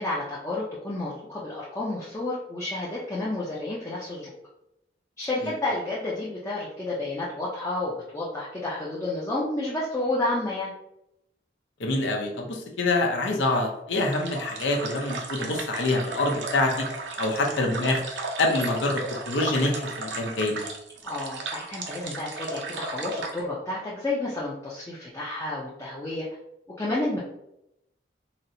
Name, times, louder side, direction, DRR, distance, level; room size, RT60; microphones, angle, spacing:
voice 1, 0.0-4.3 5.2-10.7 21.0-26.3 26.8-27.2, left 2 dB, 15° left, -7 dB, 0.4 m, -30 dB
voice 2, 11.8-16.9 17.2-18.0 18.4-19.0 19.3-20.6, left 2 dB, 90° left, 2 dB, 0.6 m, -26 dB
sound 1, 14.1-23.4, right 3 dB, 85° right, 0.6 m, -35 dB
4.1 x 2.0 x 2.6 m, 0.84 s
head